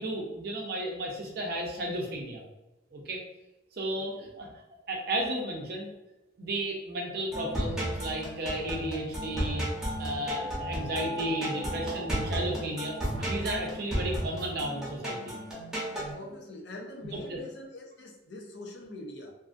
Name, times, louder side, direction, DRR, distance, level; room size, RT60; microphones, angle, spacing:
voice 1, 0.0-2.4 2.9-3.2 3.7-4.5 4.9-5.9 6.4-9.6 10.0-15.4 17.0-17.4, right 1 dB, 55° right, 0 dB, 0.5 m, -33 dB
voice 2, 4.0-4.3 16.1-19.3, left 1 dB, 60° left, 2 dB, 0.5 m, -44 dB
sound 1, 7.3-16.1, right 1 dB, 5° right, 0.8 m, -34 dB
2.6 x 2.4 x 2.5 m, 0.98 s
head